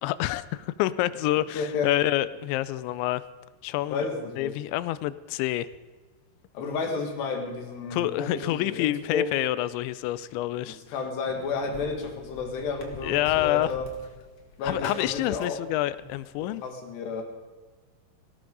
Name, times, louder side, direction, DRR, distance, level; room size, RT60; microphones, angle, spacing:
voice 1, 0.0-3.2 3.6-4.1 4.4-5.7 7.9-10.8 13.0-13.7 14.6-16.6, left 15 dB, 90° left, 16 dB, 2.9 m, -27 dB
voice 2, 1.5-1.9 3.9-4.5 6.5-9.3 10.6-13.9 14.6-15.6 16.4-17.2, left 4 dB, 70° left, 4 dB, 4.0 m, -32 dB
sound 1, 11.2-16.4, left 1 dB, 40° left, 1.6 m, -44 dB
18.5 x 16.5 x 4.0 m, 1.3 s
omnidirectional pair, 5.1 m